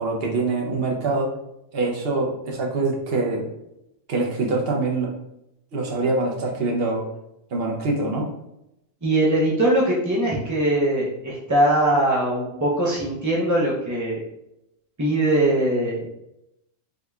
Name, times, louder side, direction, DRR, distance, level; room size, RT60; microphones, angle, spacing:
voice 1, 0.0-1.3 1.7-3.5 4.1-5.1 5.7-7.0 7.5-8.3, right 3 dB, 55° right, -1 dB, 0.8 m, -24 dB
voice 2, 9.0-14.2 15.0-16.1, right 1 dB, 30° right, -5 dB, 0.3 m, -21 dB
3.6 x 3.2 x 2.3 m, 0.86 s
omnidirectional pair, 1.4 m